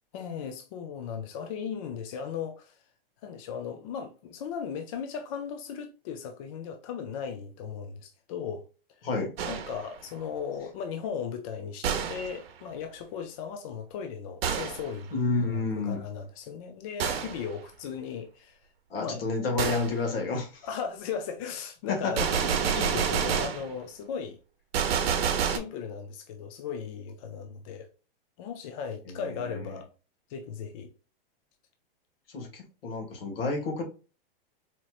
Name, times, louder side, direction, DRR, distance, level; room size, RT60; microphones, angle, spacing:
voice 1, 0.1-2.8 3.2-8.7 9.0-9.1 9.5-18.6 19.0-19.3 20.6-24.4 25.4-27.9 28.4-29.9 30.3-30.9, left 7 dB, 35° left, 0.4 m, -37 dB
Gunshot gunfire, 9.4-9.9 11.8-12.4 14.4-14.9 17.0-17.4 19.6-19.9 22.2-23.7 24.7-25.6, right 7 dB, 85° right, 0.8 m, -28 dB
voice 2, 15.1-16.0 18.9-20.7 21.9-22.1 29.1-29.2 29.5-29.6 32.3-33.8, left 3 dB, 75° left, 1.7 m, -30 dB
4.2 x 3.0 x 2.3 m
supercardioid pair, 160°, 29 cm